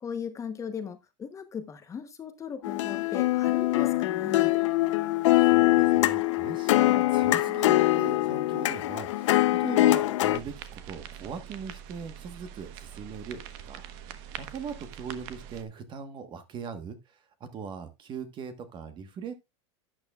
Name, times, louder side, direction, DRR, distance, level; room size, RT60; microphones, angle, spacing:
voice 1, 0.0-4.5, left 7 dB, 20° left, 0.9 m, -38 dB
sound 1, 2.6-10.4, left 17 dB, 80° left, 0.7 m, -23 dB
voice 2, 5.5-17.2 17.5-19.3, right 6 dB, 30° right, 1.3 m, -40 dB
sound 2, 10.3-15.6, right 9 dB, 55° right, 1.2 m, -44 dB
12.5 x 8.8 x 2.4 m
supercardioid pair, 135°, 16 cm